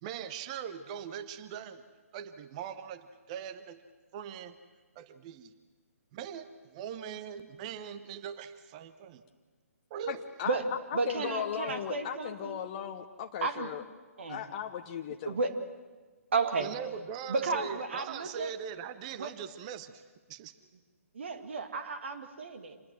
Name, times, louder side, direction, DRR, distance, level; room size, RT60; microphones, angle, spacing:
voice 1, 0.0-1.8 2.1-3.8 4.1-4.6 4.9-5.5 6.1-9.2 9.9-10.2 11.2-11.3 16.4-20.0 20.3-20.5, right 8 dB, 25° right, 12 dB, 0.9 m, -41 dB
voice 2, 10.1-10.6 11.1-13.8 14.3-15.4, left 9 dB, 30° left, 5 dB, 0.9 m, -37 dB
voice 3, 10.9-12.6 13.4-13.7 14.2-14.4 15.3-15.6 16.3-16.7 17.3-18.5 19.1-19.3 21.1-22.8, right 4 dB, 50° right, 7 dB, 2.2 m, -33 dB
27.0 x 20.5 x 7.7 m, 1.3 s
figure-of-eight pair, 135°, 8 cm